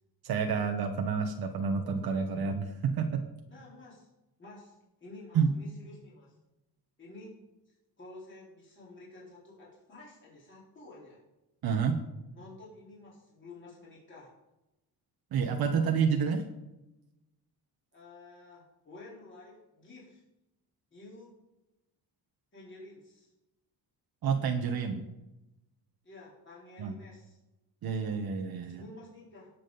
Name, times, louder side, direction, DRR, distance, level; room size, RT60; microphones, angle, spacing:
voice 1, 0.2-3.2 5.3-5.5 11.6-12.0 15.3-16.4 24.2-25.0 26.8-26.9 27.8-28.8, right 6 dB, 70° right, 4 dB, 1.2 m, -29 dB
voice 2, 3.5-4.1 4.4-6.4 7.0-7.4 7.7-11.2 12.3-14.3 17.9-20.2 20.9-21.4 22.5-23.3 26.0-27.4 28.6-29.5, left 2 dB, 30° left, -6 dB, 4.0 m, -51 dB
18.0 x 7.5 x 4.0 m, 0.95 s
cardioid pair, 150°, 39 cm